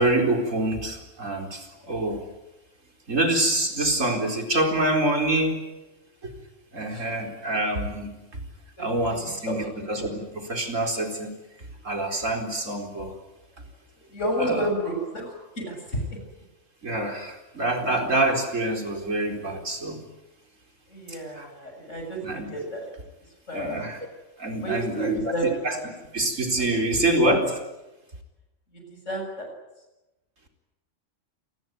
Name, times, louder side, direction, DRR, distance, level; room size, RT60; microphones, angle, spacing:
voice 1, 0.0-2.3 3.1-5.6 6.2-6.3 6.7-8.4 8.8-11.4 11.8-13.1 14.4-14.7 16.8-20.0 21.1-21.5 22.2-22.5 23.5-24.1 24.4-25.3 25.6-25.7 26.1-27.4, right 1 dB, 90° right, 4 dB, 4.8 m, -26 dB
voice 2, 8.8-9.7 10.0-10.1 14.0-16.2 20.9-22.9 23.5-23.9 24.6-25.8 26.7-27.4 28.7-29.5, right 1 dB, 75° left, 3 dB, 7.7 m, -31 dB
27.5 x 21.0 x 9.5 m, 1.0 s
omnidirectional pair, 1.3 m